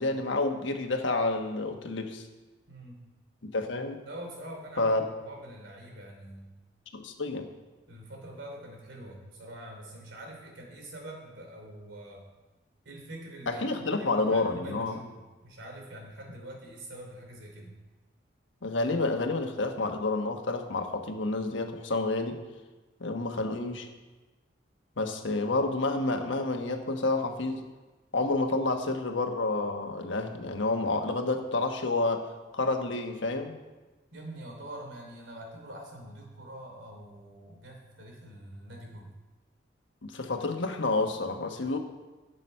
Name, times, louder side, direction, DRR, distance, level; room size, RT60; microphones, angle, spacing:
voice 1, 0.0-2.3 3.4-4.0 4.8-5.0 6.9-7.5 13.5-15.0 18.6-22.4 23.0-23.9 25.0-27.6 28.1-32.3 32.5-33.5 40.0-41.8, left 2 dB, 80° left, 5 dB, 1.3 m, -29 dB
voice 2, 2.7-3.0 4.0-6.5 7.9-12.2 12.8-17.7 34.1-39.1, right 1 dB, 85° right, 1 dB, 3.1 m, -45 dB
12.5 x 7.9 x 5.6 m, 1.2 s
head